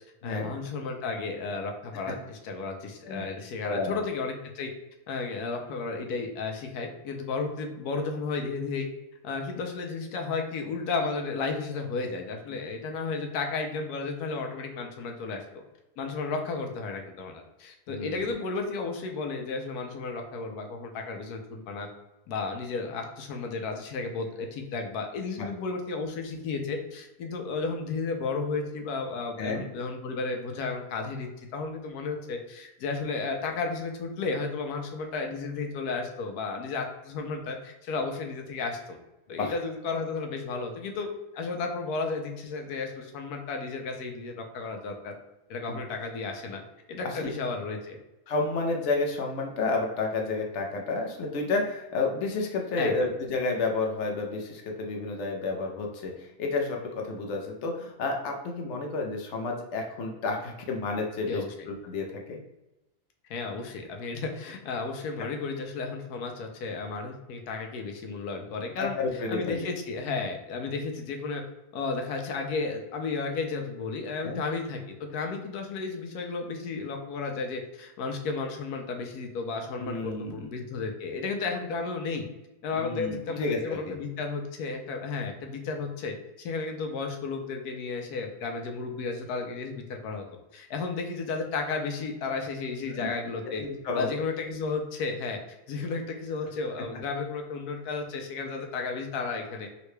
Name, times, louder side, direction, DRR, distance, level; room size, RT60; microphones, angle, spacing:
voice 1, 0.2-4.7 5.1-8.9 9.2-15.6 16.0-21.9 22.3-39.0 39.3-41.1 41.4-45.1 45.5-46.6 46.9-48.0 52.7-53.1 61.3-61.7 63.3-71.4 71.7-82.3 82.6-90.2 90.5-93.6 94.0-95.4 95.7-99.7, left 4 dB, 85° left, 3 dB, 1.1 m, -33 dB
voice 2, 3.6-4.0 17.9-18.3 25.4-25.5 29.4-29.6 39.4-39.5 45.7-45.8 47.0-47.3 48.3-61.4 61.8-62.4 68.8-69.7 74.2-74.4 79.8-80.5 82.7-84.0 93.0-93.1 93.5-94.1, left 3 dB, 65° left, 1 dB, 0.8 m, -31 dB
3.8 x 2.2 x 3.1 m, 0.97 s
omnidirectional pair, 1.6 m